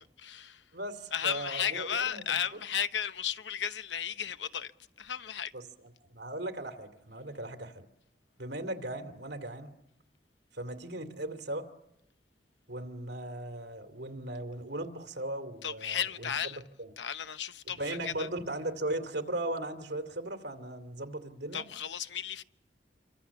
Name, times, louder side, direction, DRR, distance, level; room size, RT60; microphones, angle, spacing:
voice 1, 0.2-0.6 1.1-4.7 5.0-5.5 15.6-16.6 17.0-18.3 21.5-22.4, left 8 dB, 90° left, 0.9 m, -34 dB
voice 2, 0.7-2.3 5.5-5.6 6.1-7.8 8.4-9.7 10.5-11.7 12.7-16.3 16.8-16.9 17.7-21.6, right 1 dB, 65° right, 2.6 m, -37 dB
28.0 x 24.0 x 7.2 m
head